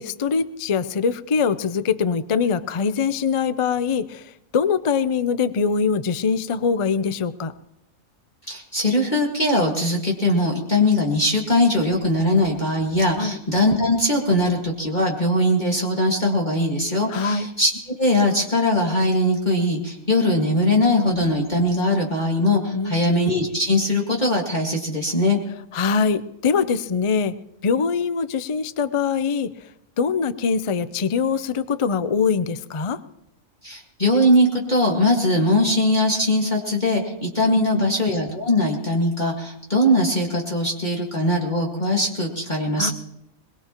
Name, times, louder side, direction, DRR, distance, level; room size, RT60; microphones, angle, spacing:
voice 1, 0.0-7.5 13.2-13.4 17.1-17.5 22.7-23.1 25.7-27.4 27.6-29.5 30.0-33.0 37.5-37.9 42.8-42.9, left 5 dB, 50° left, 13 dB, 0.3 m, -23 dB
voice 2, 8.5-17.7 18.0-25.4 33.6-42.9, left 1 dB, 30° left, -2 dB, 2.1 m, -21 dB
22.0 x 22.0 x 3.0 m, 0.82 s
omnidirectional pair, 1.5 m